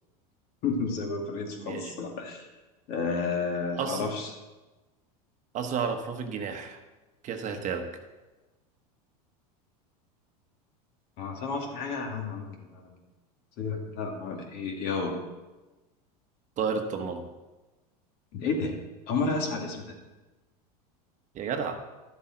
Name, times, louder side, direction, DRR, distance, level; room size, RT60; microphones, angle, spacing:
voice 1, 0.6-2.5 2.9-4.3 11.2-13.0 13.6-15.1 18.3-18.8 19.1-20.0, left 4 dB, 50° left, 1 dB, 2.4 m, -31 dB
voice 2, 1.6-1.9 3.8-4.1 5.5-6.8 7.2-7.9 16.6-17.2 21.3-21.8, right 6 dB, 40° right, 5 dB, 1.2 m, -31 dB
12.0 x 7.8 x 4.5 m, 1.1 s
supercardioid pair, 120°, 20 cm